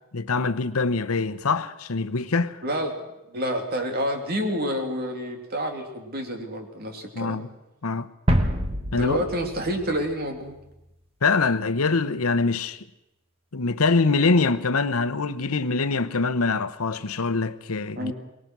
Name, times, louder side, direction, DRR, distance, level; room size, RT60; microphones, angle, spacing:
voice 1, 0.1-2.6 7.1-7.5 7.8-8.1 8.9-9.2 11.2-12.9 13.5-18.1, left 4 dB, 85° left, 0.9 m, -24 dB
voice 2, 2.6-7.4 8.9-10.6 18.0-18.1, equal, 45° right, 2.9 m, -28 dB
sound 1, 8.3-10.8, equal, 25° right, 1.6 m, -26 dB
23.5 x 20.0 x 6.1 m
head